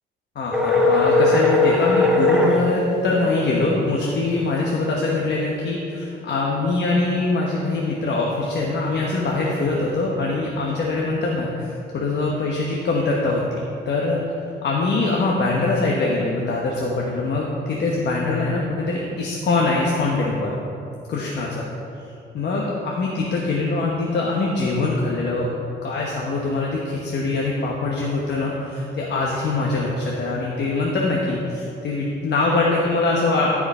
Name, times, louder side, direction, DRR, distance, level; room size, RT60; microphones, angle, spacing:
voice 1, 0.3-20.5 21.1-21.7 22.3-25.5 25.8-33.5, left 3 dB, 60° left, -3 dB, 1.2 m, -23 dB
sound 1, 0.5-2.6, left 2 dB, 5° right, 1.2 m, -17 dB
13.5 x 5.0 x 4.3 m, 2.7 s
cardioid pair, 90°, 20 cm